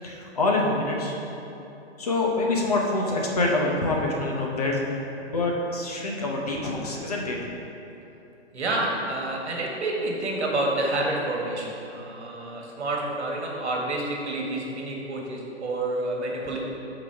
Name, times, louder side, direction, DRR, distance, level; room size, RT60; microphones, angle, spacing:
voice 1, 0.0-1.2 2.0-4.8 5.2-7.5, left 2 dB, 35° left, -1 dB, 0.7 m, -26 dB
voice 2, 8.5-16.6, right 2 dB, 70° right, -1 dB, 1.5 m, -29 dB
6.1 x 4.1 x 5.7 m, 2.9 s
hypercardioid pair, 175°, 35 cm